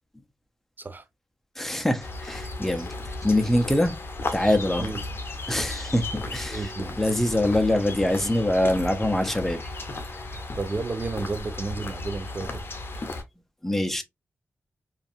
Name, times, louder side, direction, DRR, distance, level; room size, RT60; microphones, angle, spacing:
voice 1, 1.6-2.9 3.2-4.0 4.3-4.9 5.5-6.0 6.3-6.7 7.0-9.6 13.6-14.0, left 1 dB, 5° left, 0.6 m, -24 dB
sound 1, 2.0-13.2, left 2 dB, 50° left, 0.7 m, -35 dB
voice 2, 6.5-7.0 10.6-12.6, right 3 dB, 40° right, 0.5 m, -32 dB
2.6 x 2.3 x 2.5 m
cardioid pair, 50°, 5 cm